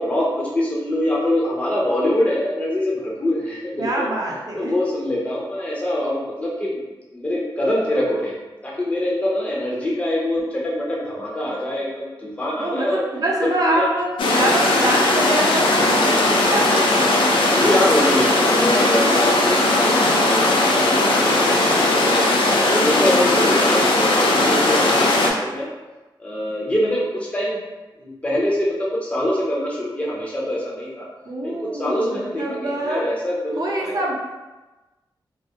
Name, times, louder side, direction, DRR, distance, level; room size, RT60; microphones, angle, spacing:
voice 1, 0.0-4.1 4.6-6.8 7.1-8.4 8.6-13.0 13.4-13.9 17.5-25.7 26.2-27.6 28.0-31.1 31.4-34.1, left 1 dB, 15° left, -5 dB, 0.5 m, -24 dB
voice 2, 3.8-4.7 12.6-14.1 14.3-16.7 31.2-33.0 33.6-34.1, right 1 dB, 50° right, -3 dB, 0.5 m, -25 dB
sound 1, 14.2-25.3, left 2 dB, 85° left, 0.4 m, -18 dB
2.2 x 2.0 x 2.6 m, 1.1 s
wide cardioid pair, 125°, 8 cm